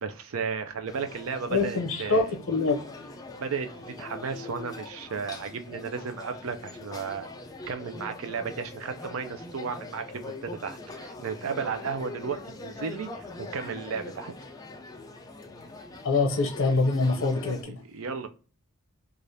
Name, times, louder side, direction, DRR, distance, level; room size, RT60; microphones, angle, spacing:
voice 1, 0.0-2.3 3.4-3.7 4.0-7.3 7.7-14.3 17.7-18.3, right 5 dB, 80° right, 0.5 m, -34 dB
sound 1, 0.9-17.6, left 2 dB, 15° left, 0.4 m, -42 dB
voice 2, 1.5-2.8 16.0-17.8, left 3 dB, 65° left, 0.7 m, -25 dB
3.3 x 2.4 x 2.6 m
head